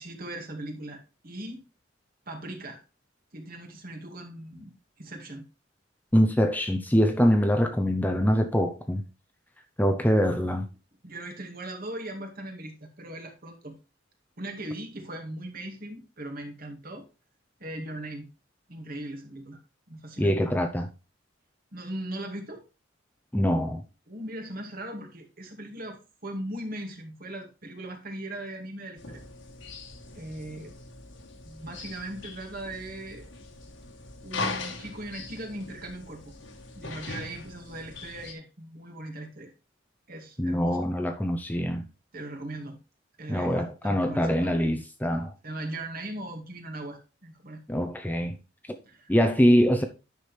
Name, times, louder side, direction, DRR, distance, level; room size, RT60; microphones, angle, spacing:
voice 1, 0.0-1.6 2.3-2.8 3.3-5.4 11.0-13.8 14.4-17.1 17.6-18.3 18.7-19.6 19.9-20.3 21.7-22.6 24.1-29.2 30.1-30.7 31.4-33.3 34.2-36.3 36.7-39.5 40.1-40.8 42.1-42.8 43.2-44.5 45.4-47.6 48.9-49.1, right 1 dB, 50° right, 2.2 m, -39 dB
voice 2, 6.1-9.0 9.8-10.7 20.2-20.9 23.3-23.8 40.4-41.8 43.3-45.3 47.7-48.4 49.1-49.8, equal, 10° left, 0.7 m, -24 dB
sound 1, 29.0-38.3, left 3 dB, 70° left, 1.6 m, -40 dB
9.7 x 6.1 x 3.4 m
head